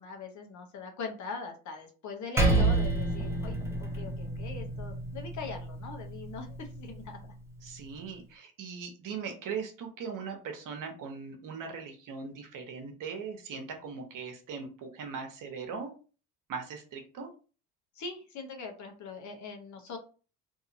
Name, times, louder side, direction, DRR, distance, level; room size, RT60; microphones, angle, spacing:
voice 1, 0.0-7.2 17.9-20.0, left 4 dB, 50° left, 3 dB, 0.9 m, -41 dB
Percussion, 2.4-7.1, right 2 dB, 5° right, 0.8 m, -30 dB
voice 2, 7.6-15.9 16.5-17.3, right 5 dB, 55° right, 4 dB, 1.0 m, -39 dB
2.7 x 2.7 x 2.6 m, 0.36 s
supercardioid pair, 85°, 39 cm